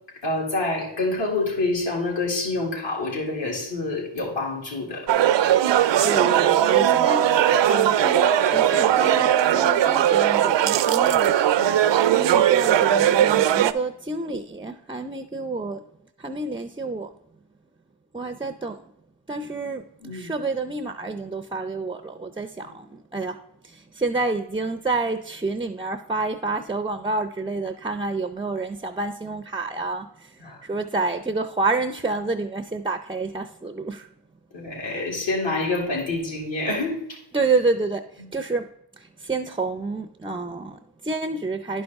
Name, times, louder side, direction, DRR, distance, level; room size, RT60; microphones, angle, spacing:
voice 1, 0.2-5.1 11.5-11.8 20.0-20.3 22.6-22.7 30.4-30.6 34.5-37.2, left 2 dB, 70° left, -2 dB, 2.6 m, -27 dB
sound 1, 5.1-13.7, right 11 dB, 70° right, 0.5 m, -19 dB
voice 2, 6.0-11.3 12.1-15.8 16.2-17.1 18.1-18.8 19.3-34.1 37.3-38.7 38.9-41.8, right 3 dB, 10° right, 8 dB, 0.4 m, -28 dB
10.5 x 5.3 x 3.5 m, 0.75 s
cardioid pair, 65°, 45 cm